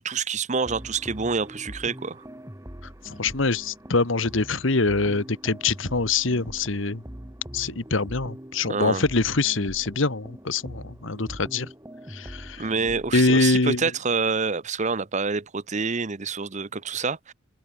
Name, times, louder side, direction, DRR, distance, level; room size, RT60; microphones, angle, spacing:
voice 1, 0.0-2.2 8.7-9.0 12.6-17.3, right 4 dB, 35° right, 0.9 m, -27 dB
sound 1, 0.7-13.5, equal, 15° right, 1.7 m, -42 dB
voice 2, 3.0-7.0 7.5-11.7 12.1-12.7 13.1-13.8, left 3 dB, 70° left, 1.5 m, -24 dB
open air
head